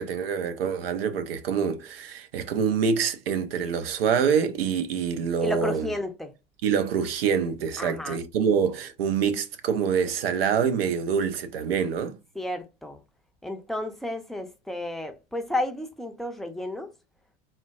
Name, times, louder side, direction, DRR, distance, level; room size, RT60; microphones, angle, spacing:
voice 1, 0.0-5.9 6.6-12.2, right 7 dB, 80° right, 0.6 m, -26 dB
voice 2, 5.4-6.3 7.8-8.2 12.3-13.0 13.4-16.9, left 1 dB, ahead, 0.5 m, -32 dB
3.7 x 2.1 x 2.3 m
hypercardioid pair, 75°, 29 cm